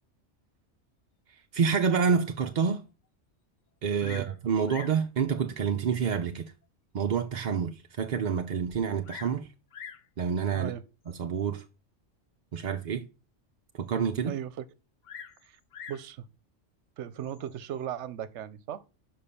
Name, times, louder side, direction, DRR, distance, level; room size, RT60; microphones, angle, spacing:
voice 1, 1.5-2.8 3.8-6.5 6.9-9.5 10.2-10.7 11.1-11.6 12.5-13.0 13.8-14.3, right 6 dB, 50° right, 0.6 m, -28 dB
Bird vocalization bird call bird song, 4.0-4.4 4.7-5.0 5.9-6.0 6.6-6.7 7.2-7.3 7.5-7.6 8.7-9.4 9.7-10.1 11.1-11.4 15.0-16.1 17.2-17.6, left 7 dB, 50° left, 0.6 m, -45 dB
voice 2, 14.2-14.6 15.4-15.6 15.9-16.3 17.0-18.9, right 10 dB, 70° right, 0.9 m, -37 dB
5.8 x 5.6 x 6.7 m
omnidirectional pair, 1.3 m